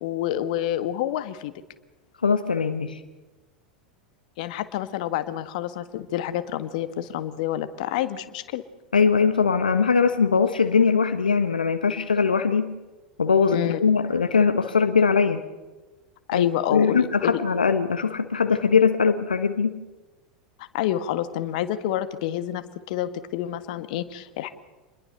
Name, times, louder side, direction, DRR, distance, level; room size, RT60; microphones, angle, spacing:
voice 1, 0.0-1.5 4.4-8.6 13.5-13.8 16.3-17.4 20.6-24.5, left 12 dB, 60° left, 11 dB, 1.8 m, -28 dB
voice 2, 2.2-3.0 8.9-12.7 13.2-15.4 16.3-19.8, left 5 dB, 85° left, 9 dB, 1.3 m, -21 dB
28.0 x 21.5 x 6.8 m, 1.2 s
figure-of-eight pair, 85°, 5 cm